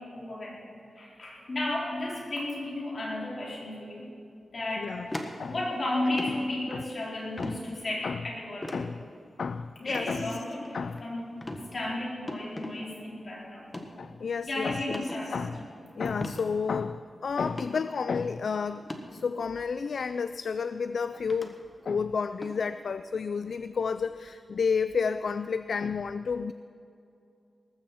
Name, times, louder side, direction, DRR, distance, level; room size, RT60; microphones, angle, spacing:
voice 1, 0.0-4.1 4.5-5.0 5.4-8.8 9.8-11.3 11.7-13.7 14.5-15.5, left 1 dB, 40° left, -4 dB, 4.4 m, -34 dB
voice 2, 4.8-5.1 5.4-5.5 6.7-6.8 7.4-7.6 8.0-8.2 8.7-9.0 9.4-10.2 10.7-11.0 14.0-15.0 15.3-15.6 16.0-21.5 21.8-26.5, left 5 dB, 65° left, 12 dB, 0.3 m, -31 dB
sound 1, 5.1-5.8 6.1-6.4 7.4-7.6 8.6-8.9 9.9-10.1 10.6-11.0 11.4-11.6 12.3-12.7 13.6-13.9 14.9-15.2 16.2-16.4 16.8-16.9 17.4-17.8 18.8-19.0 20.1-20.2 21.3-21.5 22.4-22.6, left 1 dB, 20° left, 1.3 m, -37 dB
19.0 x 14.5 x 4.4 m, 2.6 s
wide cardioid pair, 140°, 0 cm